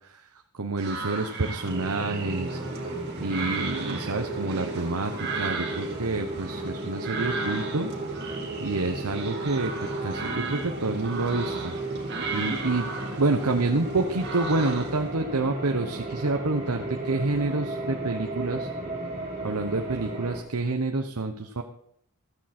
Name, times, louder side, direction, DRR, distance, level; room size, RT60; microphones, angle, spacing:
voice 1, 0.6-2.6 3.2-5.1 5.4-7.9 8.6-9.7 10.0-11.7 12.3-12.9 13.2-18.7 19.4-21.6, right 3 dB, 90° right, 4 dB, 1.0 m, -28 dB
sound 1, 0.8-15.1, right 4 dB, 50° right, 2.6 m, -36 dB
sound 2, 1.6-20.4, right 2 dB, 30° right, 4.6 m, -34 dB
14.0 x 13.0 x 4.3 m, 0.69 s
head